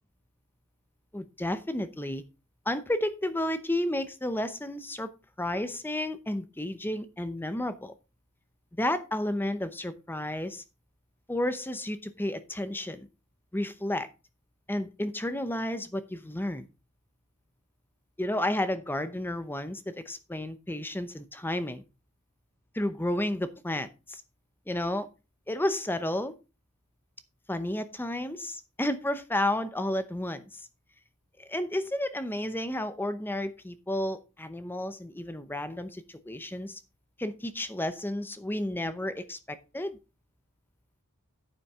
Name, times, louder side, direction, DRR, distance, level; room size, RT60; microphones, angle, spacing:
voice 1, 1.1-2.2 2.7-5.1 5.4-7.9 8.8-10.6 11.3-13.1 13.5-14.1 14.7-16.7 18.2-21.8 22.7-24.2 24.7-25.1 25.5-26.3 27.5-30.7 31.4-36.8 37.2-40.0, left 1 dB, 10° left, 0.7 m, -32 dB
9.8 x 8.4 x 3.7 m
head